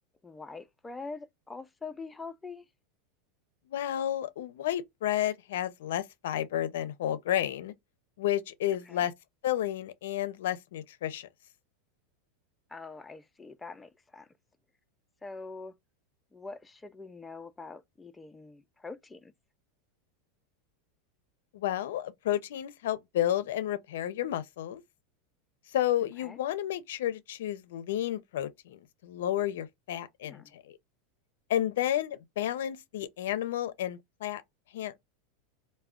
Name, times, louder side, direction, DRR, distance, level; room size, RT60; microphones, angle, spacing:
voice 1, 0.2-2.7 8.8-9.1 12.7-14.3 15.2-15.7 16.3-19.3 26.0-26.4 30.2-30.5, left 4 dB, 10° left, 0.3 m, -44 dB
voice 2, 3.7-7.7 8.2-9.1 9.4-11.3 21.5-24.8 25.7-30.8 31.5-34.4 34.7-34.9, left 12 dB, 80° left, 0.4 m, -31 dB
2.3 x 2.1 x 3.5 m
supercardioid pair, 145°, 0 cm